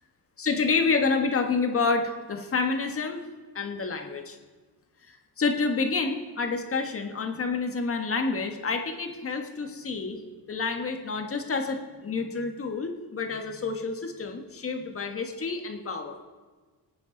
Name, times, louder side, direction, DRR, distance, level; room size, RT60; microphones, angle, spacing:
voice 1, 0.4-3.2 3.5-4.4 5.1-10.2 10.5-16.2, left 4 dB, 35° left, 5 dB, 1.5 m, -28 dB
25.0 x 9.1 x 4.0 m, 1.3 s
cardioid pair, 120°, 40 cm